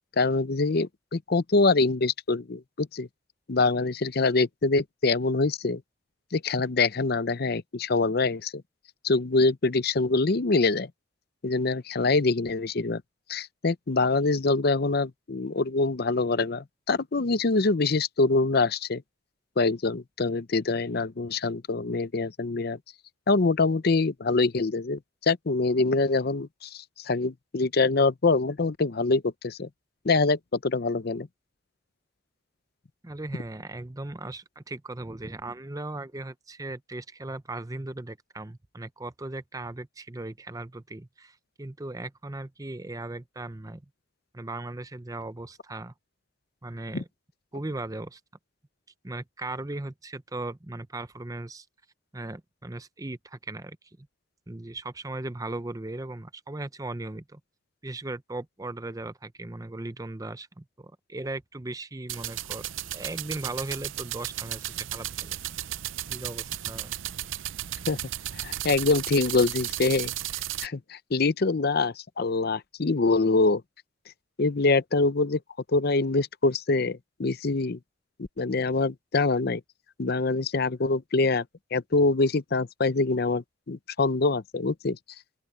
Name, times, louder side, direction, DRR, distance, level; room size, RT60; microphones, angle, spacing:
voice 1, 0.2-3.1 3.5-5.8 6.3-8.6 9.0-10.9 11.4-13.0 13.3-19.0 19.6-22.8 23.3-29.7 30.0-31.3 46.9-47.0 67.9-68.0 68.4-70.1 70.6-73.6 74.4-75.4 75.7-77.8 78.2-79.6 80.0-81.4 81.7-85.0, left 3 dB, 50° left, 0.6 m, -25 dB
voice 2, 33.0-43.8 44.3-45.9 46.6-47.1 47.5-48.2 49.0-51.7 52.1-54.1 54.5-57.4 57.8-65.4 66.1-66.9, right 2 dB, 15° right, 0.6 m, -37 dB
sound 1, 62.1-70.7, right 13 dB, 75° right, 0.6 m, -34 dB
open air
head